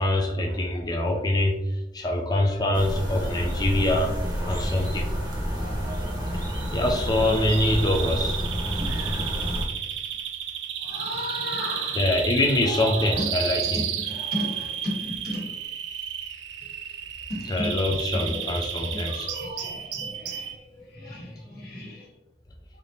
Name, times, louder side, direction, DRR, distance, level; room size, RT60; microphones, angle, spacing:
voice 1, 0.0-1.6 1.9-4.1 4.4-5.1 6.7-8.5 11.9-13.9 17.4-19.3 21.1-21.2, left 1 dB, 20° left, 1 dB, 0.4 m, -24 dB
sound 1, 2.7-9.7, equal, 20° right, 0.8 m, -29 dB
voice 2, 5.5-6.1 10.8-12.0 12.7-12.9 13.1-13.3 14.1-15.4 17.6-17.7 18.1-18.4 18.8-20.5 20.9-22.0, left 1 dB, 60° left, -3 dB, 1.4 m, -35 dB
Bird vocalization bird call bird song, 6.6-20.6, right 9 dB, 80° right, 0.4 m, -32 dB
3.8 x 3.5 x 2.7 m, 0.95 s
head